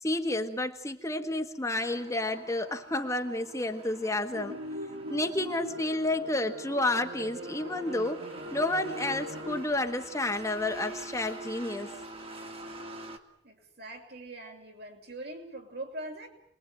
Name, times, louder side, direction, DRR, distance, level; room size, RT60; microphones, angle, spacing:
voice 1, 0.0-4.6 5.1-8.2 8.5-11.9, left 2 dB, 15° left, 5 dB, 1.6 m, -30 dB
sound 1, 1.7-13.2, right 2 dB, 35° right, 2.6 m, -46 dB
sound 2, 4.3-9.6, equal, 85° right, 1.8 m, -41 dB
voice 2, 13.4-16.3, right 1 dB, 65° right, 3 dB, 6.2 m, -42 dB
29.0 x 21.5 x 9.1 m, 0.66 s
head